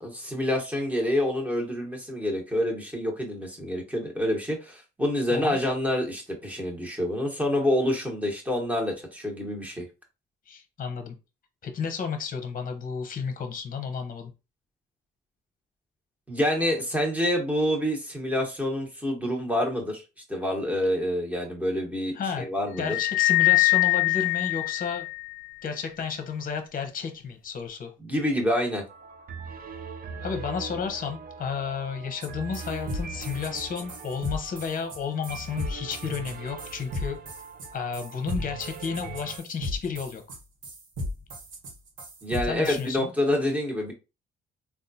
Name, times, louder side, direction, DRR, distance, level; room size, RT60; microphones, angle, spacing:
voice 1, 0.0-9.8 16.3-20.0 20.3-23.0 28.0-28.8 42.2-43.9, left 1 dB, 5° right, 1.2 m, -27 dB
voice 2, 10.5-11.1 11.6-14.3 22.2-22.5 22.8-25.1 25.6-27.9 30.2-37.2 37.7-40.4 42.4-43.1, left 6 dB, 45° left, 0.8 m, -32 dB
sound 1, 22.8-25.5, left 22 dB, 75° left, 0.5 m, -23 dB
sound 2, 28.9-39.4, right 5 dB, 50° right, 0.6 m, -41 dB
sound 3, 32.2-32.3 32.5-42.9, left 1 dB, 80° right, 1.1 m, -35 dB
3.6 x 2.3 x 2.7 m
cardioid pair, 90°, 20 cm